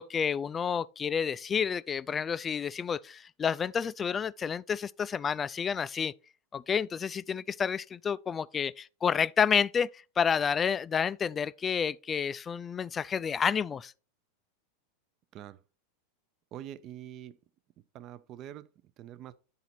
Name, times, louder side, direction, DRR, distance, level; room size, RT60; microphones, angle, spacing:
voice 1, 0.0-6.1 6.5-13.9, left 7 dB, 25° left, 0.3 m, -30 dB
voice 2, 16.5-17.4 17.8-19.4, right 11 dB, 45° right, 0.5 m, -45 dB
9.5 x 4.0 x 4.2 m
hypercardioid pair, 105°, 0 cm